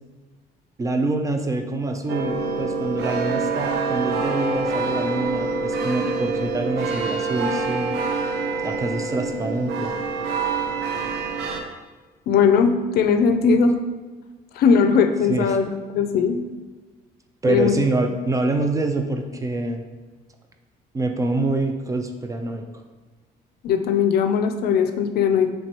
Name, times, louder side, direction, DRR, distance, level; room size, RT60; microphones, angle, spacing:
voice 1, 0.8-8.0 8.6-9.9 15.3-15.6 17.4-19.8 20.9-22.6, right 2 dB, 20° right, 5 dB, 0.4 m, -25 dB
sound 1, 2.1-11.6, right 4 dB, 75° right, 0.6 m, -26 dB
voice 2, 12.3-13.7 14.6-16.4 17.5-17.7 23.6-25.5, left 6 dB, 65° left, 7 dB, 0.4 m, -19 dB
3.2 x 3.0 x 4.4 m, 1.3 s
cardioid pair, 110°, 17 cm